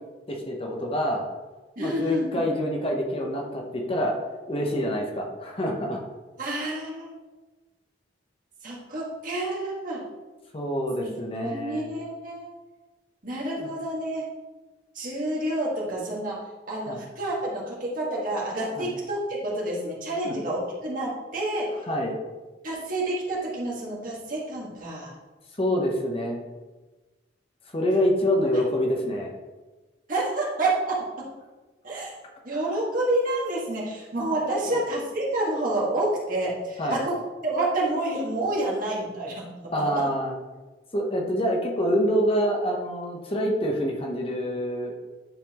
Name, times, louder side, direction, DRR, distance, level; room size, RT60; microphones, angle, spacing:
voice 1, 0.3-1.3 1.8-4.1 4.5-6.0 10.5-11.8 13.6-13.7 16.9-17.0 18.8-18.9 20.2-20.3 21.8-22.2 25.6-26.4 27.7-29.3 34.7-34.8 36.8-37.0 39.7-40.3 40.9-45.0, equal, 30° left, 0 dB, 0.9 m, -26 dB
voice 2, 1.8-2.4 6.4-7.1 8.6-10.0 11.0-11.1 11.4-12.5 13.2-14.2 14.9-16.4 16.7-21.7 22.6-25.1 30.1-31.0 31.8-32.1 32.4-37.1 37.4-40.0, right 1 dB, 50° right, -4 dB, 1.7 m, -28 dB
10.0 x 4.1 x 3.0 m, 1.2 s
head